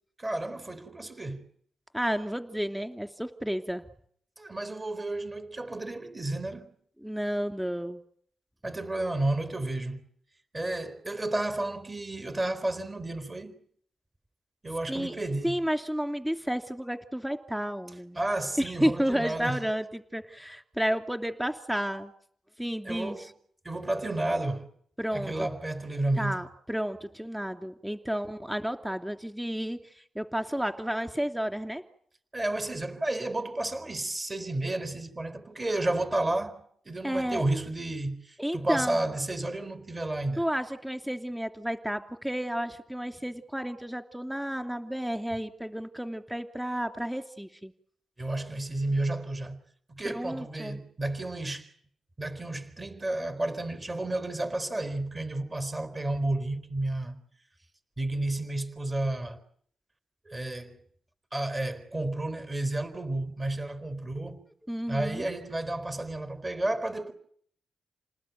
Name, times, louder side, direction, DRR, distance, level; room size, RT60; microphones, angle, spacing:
voice 1, 0.2-1.5 4.4-6.7 7.4-7.6 8.6-10.1 10.5-13.6 14.6-15.6 18.2-19.6 22.8-23.3 23.6-24.7 25.1-26.4 32.3-40.5 48.2-49.6 49.9-51.7 52.2-57.2 58.0-59.4 60.3-60.8 61.3-64.4 64.9-67.1, right 2 dB, 25° right, 4.1 m, -32 dB
voice 2, 1.9-3.8 7.0-8.0 14.9-15.2 15.4-18.2 18.6-22.1 22.6-23.2 25.0-25.5 26.2-29.8 30.1-31.8 37.0-37.4 38.4-39.0 40.4-47.7 50.0-50.8 64.7-65.3, equal, 5° right, 2.8 m, -31 dB
29.0 x 19.5 x 9.4 m
cardioid pair, 80°, 0 cm